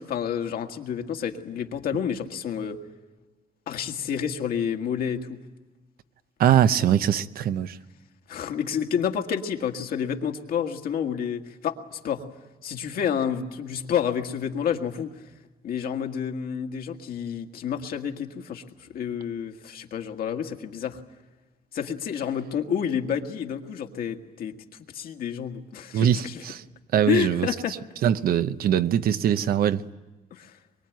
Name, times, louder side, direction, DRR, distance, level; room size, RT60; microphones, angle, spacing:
voice 1, 0.0-2.8 3.7-5.4 8.3-12.2 12.6-15.2 15.6-21.0 21.7-24.5 24.9-26.4 27.1-27.8 30.3-30.6, left 8 dB, 75° left, 1.8 m, -29 dB
voice 2, 6.4-7.8 25.9-26.6 26.9-27.5 28.0-29.8, right 10 dB, 75° right, 0.8 m, -22 dB
23.5 x 23.0 x 9.2 m
cardioid pair, 160°, 15 cm